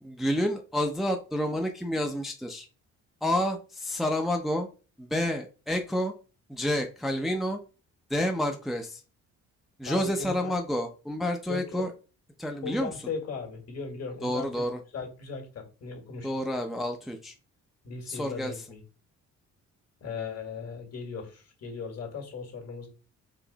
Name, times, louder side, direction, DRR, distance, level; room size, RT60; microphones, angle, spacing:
voice 1, 0.0-2.7 3.2-4.7 5.0-6.1 6.5-7.6 8.1-9.0 9.8-11.9 12.4-12.9 14.2-14.8 16.2-17.3 18.1-18.6, left 1 dB, ahead, 3 dB, 0.6 m, -29 dB
voice 2, 9.9-10.5 11.5-11.6 12.6-14.5 14.9-16.3 17.8-18.8 20.0-22.9, left 5 dB, 55° left, 2 dB, 1.9 m, -37 dB
4.9 x 2.5 x 3.9 m, 0.34 s
cardioid pair, 90°, 30 cm